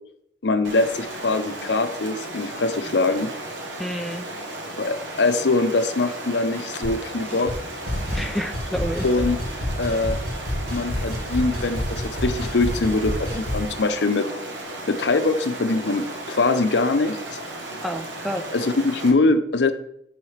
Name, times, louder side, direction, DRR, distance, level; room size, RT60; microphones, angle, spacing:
voice 1, 0.4-3.3 4.8-7.5 9.0-9.4 9.8-10.2 10.7-14.3 14.9-17.2 18.5-19.7, left 3 dB, 75° left, 9 dB, 0.6 m, -22 dB
Stream, 0.6-19.1, right 1 dB, 90° right, 1.1 m, -35 dB
voice 2, 3.8-4.3 8.1-9.1 17.8-18.4, equal, ahead, 5 dB, 0.4 m, -29 dB
sound 1, 6.8-7.0 7.2-7.6 7.9-13.7, left 1 dB, 55° right, 3.0 m, -29 dB
10.0 x 4.0 x 3.3 m, 0.71 s
head